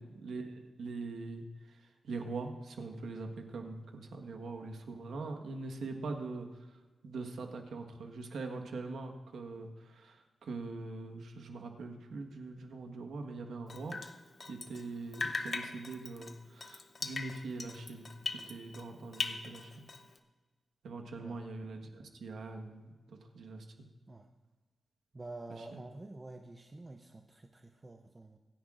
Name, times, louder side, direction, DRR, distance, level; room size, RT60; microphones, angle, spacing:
voice 1, 0.0-14.0 14.4-19.9 20.8-23.9 25.5-25.8, right 3 dB, 90° right, 4 dB, 1.4 m, -43 dB
Drip, 13.7-14.9 15.1-18.9 19.1-20.2, left 4 dB, 40° left, 0.7 m, -40 dB
voice 2, 25.1-28.4, right 2 dB, 20° right, 4 dB, 0.6 m, -48 dB
25.0 x 10.0 x 2.5 m, 1.3 s
wide cardioid pair, 155°, 0 cm